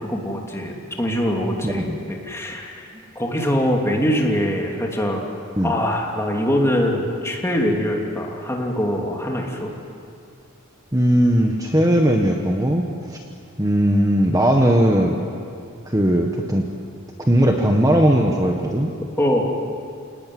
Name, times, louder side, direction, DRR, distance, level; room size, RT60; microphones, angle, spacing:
voice 1, 0.1-2.8 3.1-5.2 5.6-9.7 19.2-19.5, equal, 10° left, 0 dB, 3.0 m, -23 dB
voice 2, 1.6-2.0 5.6-5.7 10.9-13.2 13.6-15.2 15.8-16.7 17.3-18.9, equal, 15° right, 1 dB, 1.4 m, -18 dB
28.5 x 19.0 x 9.4 m, 2.4 s
head